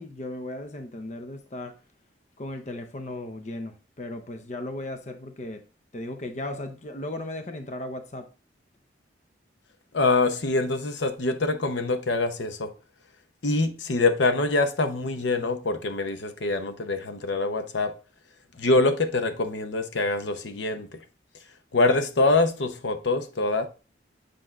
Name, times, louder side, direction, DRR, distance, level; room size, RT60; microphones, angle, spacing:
voice 1, 0.0-1.7 2.4-5.6 5.9-8.3, left 1 dB, 40° left, 0.6 m, -36 dB
voice 2, 9.9-12.7 13.4-17.9 18.6-21.0 21.7-23.7, left 3 dB, 80° left, 0.7 m, -24 dB
7.8 x 5.0 x 2.4 m
head